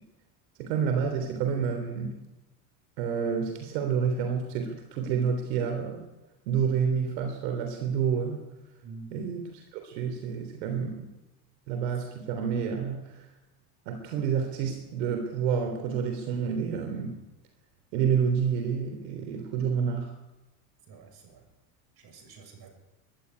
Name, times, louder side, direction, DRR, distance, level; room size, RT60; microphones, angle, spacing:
voice 1, 0.6-2.2 3.0-6.0 6.5-8.4 9.1-11.1 11.7-13.3 13.9-17.1 17.9-20.1, right 6 dB, 85° right, 6 dB, 3.5 m, -29 dB
voice 2, 20.9-21.5 22.0-22.7, right 4 dB, 50° right, 6 dB, 6.8 m, -47 dB
23.5 x 11.0 x 10.0 m, 1.0 s
supercardioid pair, 120°, 49 cm